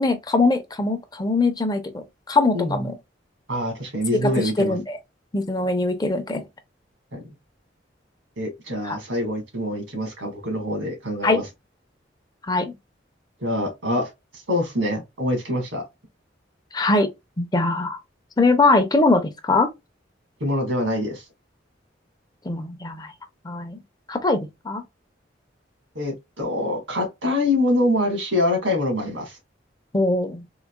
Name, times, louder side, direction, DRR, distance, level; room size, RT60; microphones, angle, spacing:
voice 1, 0.0-2.9 4.1-5.0 5.3-6.4 8.8-9.0 11.2-11.4 12.5-12.7 16.7-17.1 17.4-18.0 18.4-19.7 22.5-23.1 23.4-23.8 24.1-24.8 29.9-30.4, left 2 dB, 20° left, 0.5 m, -22 dB
voice 2, 2.5-2.9 3.5-4.8 7.1-7.2 8.4-11.4 13.4-14.1 14.5-15.8 20.4-21.2 26.0-29.3, left 1 dB, 85° right, 1.7 m, -25 dB
3.8 x 2.8 x 2.2 m
head